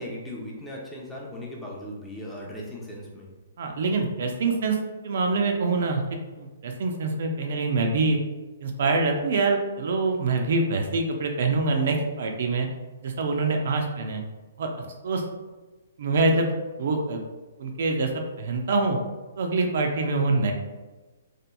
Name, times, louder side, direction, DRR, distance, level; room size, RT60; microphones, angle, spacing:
voice 1, 0.0-3.3, left 1 dB, 10° left, -3 dB, 0.5 m, -38 dB
voice 2, 3.6-4.8 5.0-6.0 6.4-8.2 8.6-12.7 13.0-14.2 14.6-15.2 16.0-16.5 16.8-17.2 17.6-18.1 18.4-19.0 19.4-20.5, right 3 dB, 65° right, 3 dB, 0.4 m, -25 dB
2.8 x 2.4 x 2.2 m, 1.2 s
hypercardioid pair, 140°, 0 cm